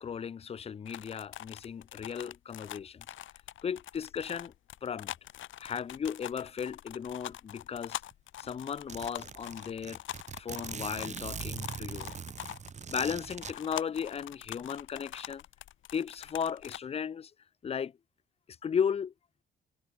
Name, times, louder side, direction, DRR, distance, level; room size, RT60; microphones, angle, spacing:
voice 1, 0.0-3.1 3.6-4.5 4.8-5.1 5.6-8.0 8.4-10.0 10.4-12.1 12.9-15.4 15.9-17.3 17.6-17.9 18.6-19.1, left 7 dB, 30° left, 0.5 m, -35 dB
sound 1, 0.9-16.8, left 13 dB, 75° left, 2.4 m, -44 dB
Zipper (clothing), 8.1-8.2 8.4-8.5 8.9-13.5, right 6 dB, 35° right, 1.0 m, -41 dB
cardioid pair, 90°, 20 cm